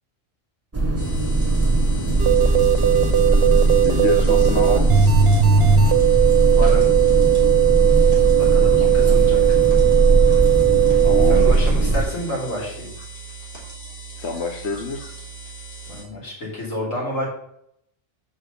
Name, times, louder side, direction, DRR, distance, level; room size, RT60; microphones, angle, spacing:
sound 1, 0.7-12.0, right 2 dB, 10° right, 1.0 m, -19 dB
sound 2, 1.0-16.0, right 3 dB, 45° left, 3.6 m, -39 dB
sound 3, 2.2-11.5, right 10 dB, 60° right, 0.8 m, -18 dB
voice 1, 3.8-5.2 11.0-11.7 14.2-15.2, left 4 dB, 60° left, 4 dB, 1.1 m, -27 dB
voice 2, 6.5-6.9 8.4-9.6 11.2-12.9 15.9-17.3, equal, 75° left, -5 dB, 4.0 m, -29 dB
6.5 x 5.6 x 6.8 m, 0.71 s
omnidirectional pair, 1.3 m